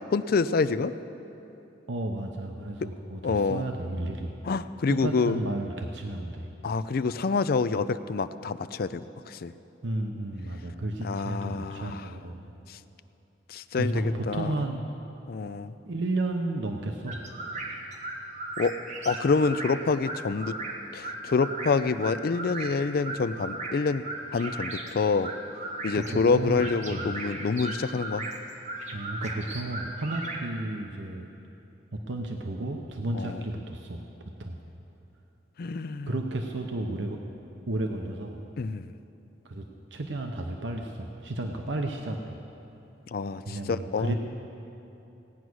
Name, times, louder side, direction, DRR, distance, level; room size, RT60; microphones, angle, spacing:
voice 1, 0.1-0.9 3.2-3.6 4.5-5.4 6.6-9.5 11.0-12.0 12.7-12.8 13.5-14.5 15.3-15.7 18.6-18.7 19.1-20.6 20.9-24.0 24.3-25.3 25.8-28.3 33.1-33.4 35.6-36.1 38.6-38.9 43.1-44.1, left 4 dB, 55° left, 13 dB, 0.4 m, -27 dB
voice 2, 1.9-4.3 4.9-6.5 9.8-12.4 13.7-14.9 15.8-17.2 25.9-27.1 28.9-31.3 32.1-34.0 34.4-34.6 36.1-37.2 37.7-38.4 39.4-39.6 39.9-42.4 43.5-44.1, right 2 dB, 80° right, 3 dB, 0.8 m, -32 dB
sound 1, 17.1-30.5, right 2 dB, 40° right, 1.3 m, -37 dB
17.0 x 9.5 x 6.2 m, 2.9 s
head